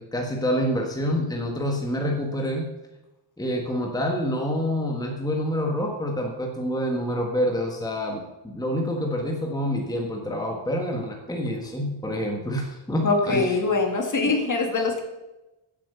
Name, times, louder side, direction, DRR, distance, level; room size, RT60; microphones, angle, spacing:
voice 1, 0.0-2.6 3.4-13.6, equal, 10° left, 1 dB, 1.5 m, -27 dB
voice 2, 13.0-15.0, left 3 dB, 40° left, 3 dB, 2.4 m, -23 dB
16.0 x 8.7 x 6.8 m, 1.0 s
wide cardioid pair, 180°, 49 cm